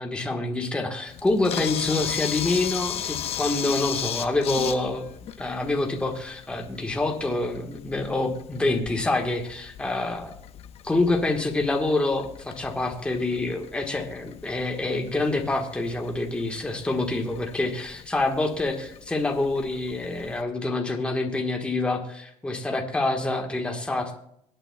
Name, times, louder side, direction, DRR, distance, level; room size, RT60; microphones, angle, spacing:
voice 1, 0.0-5.0 5.4-10.3 10.8-24.2, left 2 dB, 10° left, 2 dB, 1.4 m, -26 dB
Camera, 1.1-20.4, left 9 dB, 55° left, 1.0 m, -37 dB
25.0 x 9.0 x 2.3 m, 0.73 s
cardioid pair, 125°, 12 cm